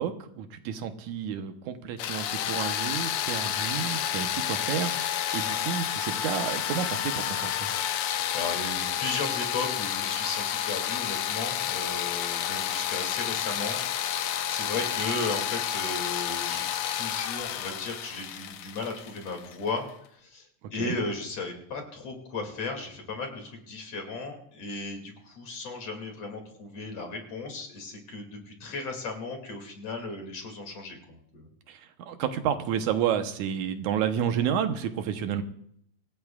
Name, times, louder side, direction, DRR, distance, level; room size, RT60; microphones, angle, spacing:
voice 1, 0.0-7.7 20.8-21.0 31.7-35.4, right 8 dB, 85° right, 7 dB, 2.5 m, -30 dB
sound 1, 2.0-19.7, left 10 dB, 80° left, 1.2 m, -30 dB
voice 2, 8.1-16.6 16.9-19.9 20.2-20.5 20.7-31.5, left 3 dB, 55° left, 2 dB, 3.6 m, -35 dB
25.0 x 17.0 x 2.4 m, 0.70 s
omnidirectional pair, 3.3 m